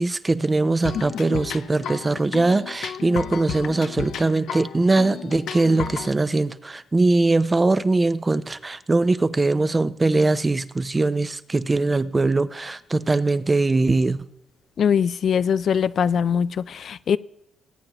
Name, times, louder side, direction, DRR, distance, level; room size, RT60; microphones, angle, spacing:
voice 1, 0.0-14.3, right 2 dB, 20° right, 0.5 m, -21 dB
sound 1, 0.8-6.1, left 8 dB, 75° left, 0.8 m, -33 dB
voice 2, 14.8-17.2, left 7 dB, 60° left, 0.3 m, -22 dB
22.0 x 9.0 x 3.0 m
cardioid pair, 90°, 0 cm